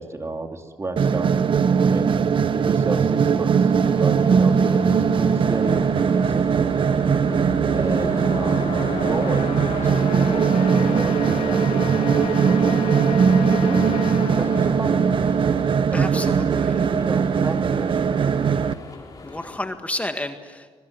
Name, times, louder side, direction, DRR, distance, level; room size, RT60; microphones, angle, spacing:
voice 1, 0.0-1.4 1.7-2.1 2.5-3.7 4.0-6.7 7.7-8.7 9.1-9.5 9.8-12.8 13.6-14.0 14.4-15.4 15.9-16.2 17.0-18.0, right 2 dB, 30° right, 5 dB, 2.8 m, -32 dB
sound 1, 1.0-18.7, right 6 dB, 55° right, 1.1 m, -20 dB
sound 2, 3.7-19.6, left 3 dB, 35° left, 6.1 m, -43 dB
sound 3, 6.7-16.1, left 9 dB, 85° left, 1.5 m, -34 dB
voice 2, 15.9-16.5 19.2-20.7, left 1 dB, 15° left, 6 dB, 1.8 m, -30 dB
25.5 x 22.5 x 9.5 m, 1.5 s
cardioid pair, 85°, 10 cm